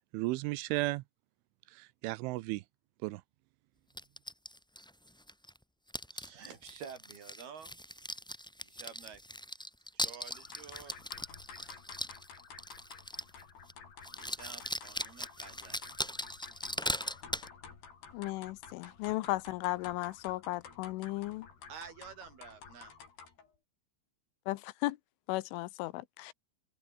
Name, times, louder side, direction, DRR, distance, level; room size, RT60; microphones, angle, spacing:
voice 1, 0.1-1.0 1.7-2.6 3.0-3.2, right 21 dB, 85° right, 3.1 m, -34 dB
sound 1, 4.0-5.6 5.9-13.4 13.7-13.8 14.0-17.5, equal, 5° left, 0.6 m, -39 dB
voice 2, 6.1-7.8 8.6-9.2 9.9-11.0 11.6-11.8 14.1-15.8 21.7-23.0, right 7 dB, 55° right, 5.2 m, -50 dB
sound 2, 10.3-23.5, left 6 dB, 55° left, 6.7 m, -52 dB
voice 3, 18.1-21.5 24.5-25.0 25.3-26.3, left 19 dB, 85° left, 3.3 m, -35 dB
omnidirectional pair, 5.6 m